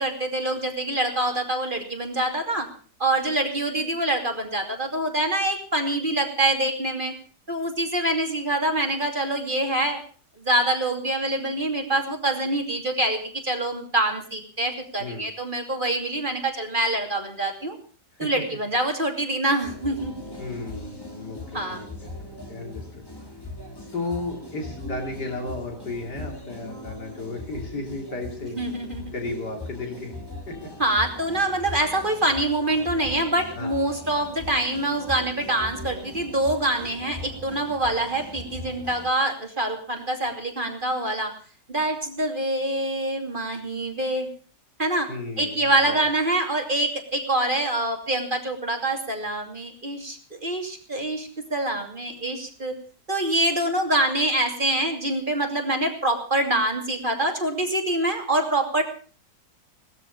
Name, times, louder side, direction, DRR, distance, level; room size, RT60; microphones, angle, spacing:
voice 1, 0.0-2.7 3.0-7.1 7.5-10.0 10.4-17.8 18.2-20.1 21.5-21.8 28.6-29.1 30.8-41.3 41.7-44.3 44.8-45.1 45.4-52.8 53.1-58.8, right 1 dB, 30° right, 3 dB, 2.8 m, -25 dB
sound 1, 19.6-39.1, left 1 dB, 15° left, 2.7 m, -39 dB
voice 2, 20.4-23.1 23.9-28.6 29.1-30.2 30.5-30.6 33.5-33.7 45.1-46.0, left 2 dB, 70° left, 2 dB, 3.3 m, -34 dB
19.0 x 13.0 x 5.3 m, 0.41 s
omnidirectional pair, 1.9 m